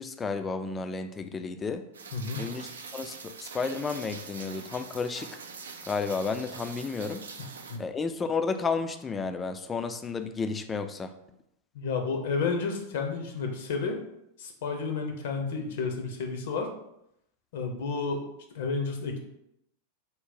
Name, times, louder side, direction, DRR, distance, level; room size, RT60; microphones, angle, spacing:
voice 1, 0.0-1.9 2.4-5.4 5.9-7.2 7.8-11.1, left 4 dB, 15° left, 8 dB, 0.3 m, -32 dB
Rain, 1.9-7.8, right 5 dB, 65° right, 0.3 m, -44 dB
voice 2, 2.1-2.5 7.7-7.8 11.7-14.0 14.4-16.7 17.5-18.2 18.5-19.2, left 4 dB, 55° left, 3 dB, 0.6 m, -31 dB
3.6 x 2.1 x 4.0 m, 0.80 s
figure-of-eight pair, 90°, 0 cm